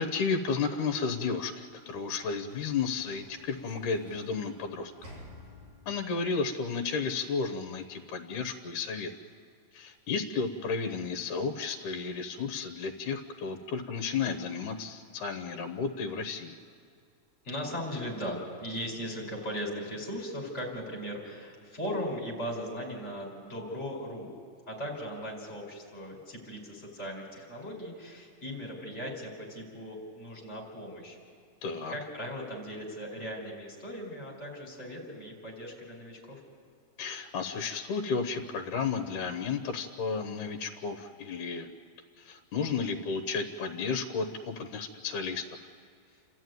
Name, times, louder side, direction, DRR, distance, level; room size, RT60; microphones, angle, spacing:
voice 1, 0.0-4.9 5.9-9.1 9.7-16.6 31.6-32.0 37.0-41.7 42.2-45.4, left 5 dB, 70° left, 5 dB, 2.4 m, -33 dB
Sliding door / Slam, 1.4-6.1, left 1 dB, 55° right, 5.9 m, -53 dB
voice 2, 17.4-24.3 24.7-31.2 31.9-36.4, equal, 20° left, -1 dB, 4.9 m, -38 dB
29.5 x 13.5 x 9.4 m, 2.3 s
omnidirectional pair, 3.9 m